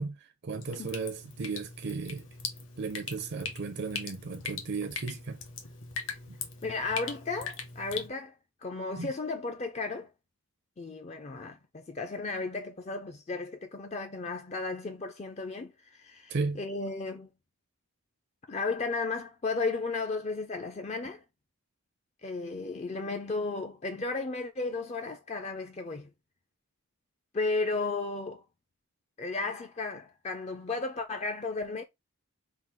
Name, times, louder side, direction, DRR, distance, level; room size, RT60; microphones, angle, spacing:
voice 1, 0.0-2.3 2.8-5.4 6.3-6.4 9.0-9.1 16.3-16.6, right 4 dB, 50° right, 0.5 m, -35 dB
Drip, 0.6-8.1, left 5 dB, 60° left, 0.9 m, -41 dB
voice 2, 6.6-8.3 8.6-10.1 10.8-17.3 18.5-21.2 22.2-26.1 27.3-28.4 29.2-31.8, left 3 dB, 30° left, 0.4 m, -34 dB
3.7 x 2.3 x 4.3 m
head